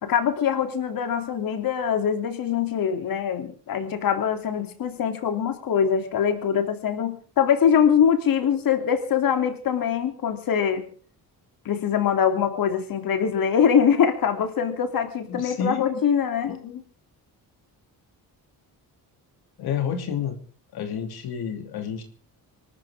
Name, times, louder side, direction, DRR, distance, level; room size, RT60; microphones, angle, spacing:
voice 1, 0.0-10.9 11.6-16.5, left 8 dB, 65° left, 7 dB, 3.0 m, -23 dB
voice 2, 15.3-16.0 16.4-16.8 19.6-20.4 20.7-22.0, left 8 dB, 90° left, 5 dB, 2.9 m, -30 dB
25.5 x 13.5 x 3.6 m, 0.44 s
cardioid pair, 145°, 37 cm